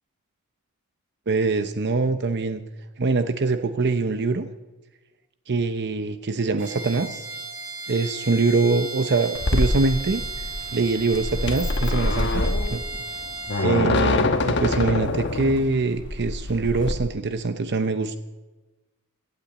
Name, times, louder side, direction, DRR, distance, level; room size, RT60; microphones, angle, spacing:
voice 1, 1.3-2.6 3.0-4.5 5.5-7.2 7.9-10.2 10.7-12.4 12.7-12.8 13.6-18.2, right 3 dB, 50° right, 9 dB, 0.7 m, -23 dB
Bowed string instrument, 6.6-13.7, right 3 dB, 70° right, 2.6 m, -35 dB
sound 1, 9.3-16.9, left 2 dB, 55° left, 1.2 m, -25 dB
16.5 x 8.9 x 8.1 m, 1.1 s
head